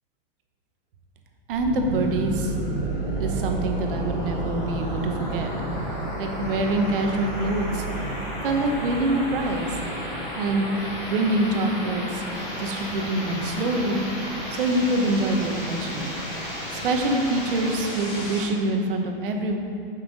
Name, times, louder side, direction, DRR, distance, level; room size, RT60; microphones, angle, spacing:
sound 1, 1.5-18.5, left 1 dB, 30° left, 1.4 m, -33 dB
voice 1, 1.5-2.6 3.2-5.5 6.2-7.9 8.4-9.8 10.4-10.7 11.1-12.2 12.6-14.0 14.5-16.1 16.7-19.6, right 2 dB, 65° right, 3 dB, 1.0 m, -25 dB
sound 2, 1.8-9.9, right 4 dB, 15° right, 0.6 m, -33 dB
6.0 x 5.8 x 5.1 m, 2.5 s
supercardioid pair, 170°, 29 cm